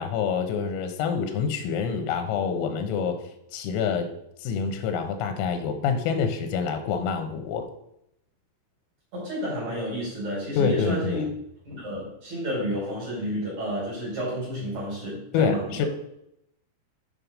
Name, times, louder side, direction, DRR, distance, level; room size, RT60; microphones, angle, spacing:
voice 1, 0.0-3.2 3.5-4.1 4.4-7.7 10.6-11.3 15.3-15.9, left 6 dB, 90° left, 7 dB, 3.9 m, -26 dB
voice 2, 9.1-11.2 11.6-15.8, equal, 35° right, -6 dB, 5.2 m, -31 dB
9.7 x 6.5 x 5.3 m, 0.78 s
omnidirectional pair, 5.9 m